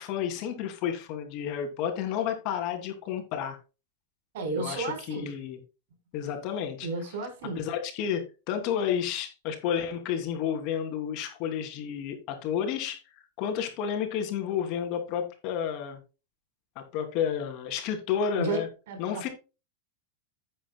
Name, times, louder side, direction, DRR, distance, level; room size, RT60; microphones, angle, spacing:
voice 1, 0.0-3.6 4.6-5.6 6.1-6.9 7.6-13.0 13.4-16.0 16.8-18.7 19.0-19.3, left 8 dB, 50° left, 5 dB, 2.9 m, -31 dB
voice 2, 4.3-5.4 6.8-7.7 18.4-19.3, right 3 dB, 70° right, 6 dB, 4.7 m, -33 dB
12.0 x 8.6 x 2.3 m, 0.30 s
hypercardioid pair, 125°, 0 cm